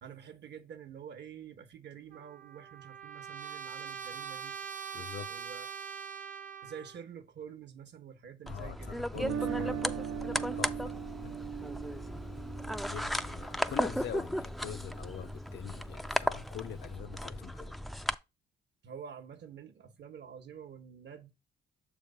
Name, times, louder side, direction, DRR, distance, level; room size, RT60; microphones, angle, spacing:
voice 1, 0.0-4.6 5.3-5.7 6.6-9.0 18.8-21.3, right 7 dB, 60° right, 0.9 m, -48 dB
Trumpet, 2.1-7.0, right 7 dB, 40° right, 0.6 m, -43 dB
voice 2, 4.9-5.3 8.4-9.9 10.6-11.3 12.9-17.8, left 10 dB, 60° left, 0.6 m, -44 dB
sound 1, 8.5-18.1, equal, ahead, 0.3 m, -36 dB
Guitar, 9.1-15.2, right 8 dB, 85° right, 0.6 m, -40 dB
6.7 x 3.2 x 5.3 m
cardioid pair, 90°, 20 cm